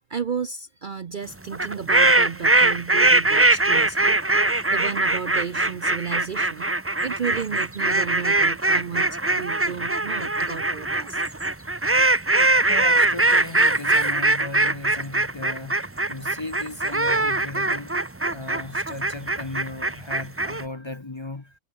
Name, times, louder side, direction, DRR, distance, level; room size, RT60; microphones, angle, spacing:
voice 1, 0.1-6.7 7.0-11.2, right 6 dB, 45° right, 0.7 m, -33 dB
sound 1, 1.5-20.6, right 2 dB, 15° right, 0.6 m, -21 dB
voice 2, 12.7-18.0 18.3-21.5, left 2 dB, 25° left, 0.9 m, -36 dB
omnidirectional pair, 1.4 m